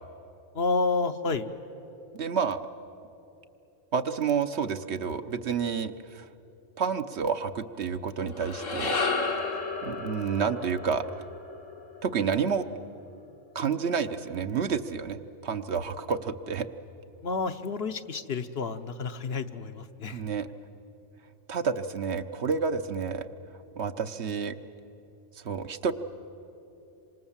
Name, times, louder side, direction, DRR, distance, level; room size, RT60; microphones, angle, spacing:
voice 1, 0.5-1.5 17.2-20.2, left 4 dB, 60° left, 9 dB, 1.0 m, -30 dB
voice 2, 2.1-2.6 3.9-6.3 6.8-9.0 9.5-11.0 12.0-12.7 13.5-16.7 20.1-20.5 21.5-23.3 23.8-24.6 25.4-25.9, right 6 dB, 65° right, 9 dB, 1.1 m, -29 dB
sound 1, 8.2-12.7, left 3 dB, 85° left, 2.1 m, -33 dB
26.5 x 26.0 x 7.3 m, 3.0 s
omnidirectional pair, 1.3 m